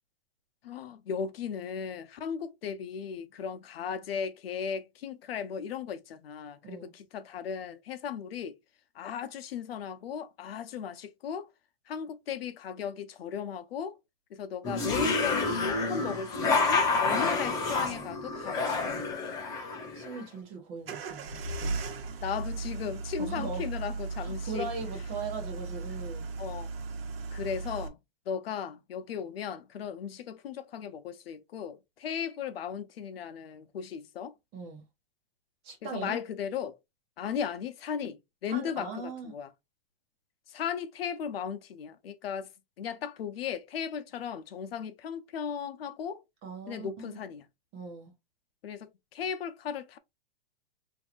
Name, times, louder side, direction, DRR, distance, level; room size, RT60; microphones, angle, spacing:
voice 1, 0.6-8.6 8.9-11.5 11.9-14.0 14.3-19.0 22.2-24.7 26.4-26.7 27.3-28.0 28.3-34.3 35.8-36.8 37.2-39.5 40.5-42.5 42.8-46.2 46.7-47.4 48.6-50.0, left 7 dB, 80° left, 0.9 m, -36 dB
sound 1, 14.6-20.2, left 3 dB, 10° left, 0.5 m, -29 dB
voice 2, 19.9-21.8 23.2-23.6 24.2-26.3 34.5-34.8 35.6-36.2 38.5-39.3 46.4-47.2 47.7-48.1, right 4 dB, 20° right, 0.9 m, -39 dB
sound 2, 20.8-27.9, right 3 dB, 85° right, 1.1 m, -36 dB
5.3 x 2.9 x 2.5 m
supercardioid pair, 175°, 29 cm